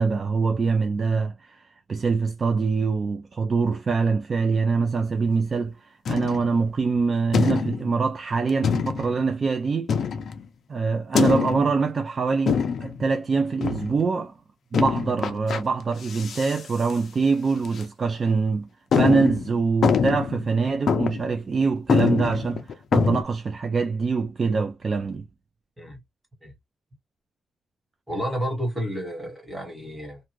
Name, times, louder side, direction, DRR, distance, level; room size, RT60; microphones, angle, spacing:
voice 1, 0.0-9.9 10.7-14.4 14.7-18.7 19.0-25.3, right 4 dB, 35° right, 0.3 m, -24 dB
sound 1, 6.1-6.6 7.3-8.0 8.6-9.2 9.9-10.5 11.1-11.8 12.5-13.0 13.6-14.0 14.7-15.6 16.0-16.6 16.9-17.0 17.6-17.8 18.3-18.4 18.9-20.5 20.9-21.3 21.6-21.7 21.9-23.2, left 6 dB, 55° left, 0.5 m, -24 dB
voice 2, 28.1-30.2, equal, 5° right, 1.6 m, -30 dB
2.5 x 2.4 x 3.1 m
wide cardioid pair, 170°, 0 cm